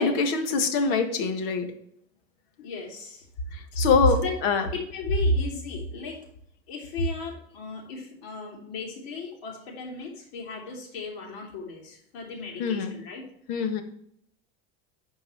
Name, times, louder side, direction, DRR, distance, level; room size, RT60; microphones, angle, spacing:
voice 1, 0.0-1.7 3.5-4.7 12.6-13.0 13.5-13.8, left 5 dB, 70° left, 7 dB, 1.6 m, -24 dB
voice 2, 2.6-3.3 3.7-3.9 4.1-4.3 4.7-6.2 6.7-13.2, left 1 dB, 85° left, 0 dB, 3.3 m, -33 dB
12.0 x 4.7 x 4.5 m, 0.71 s
cardioid pair, 155°, 30 cm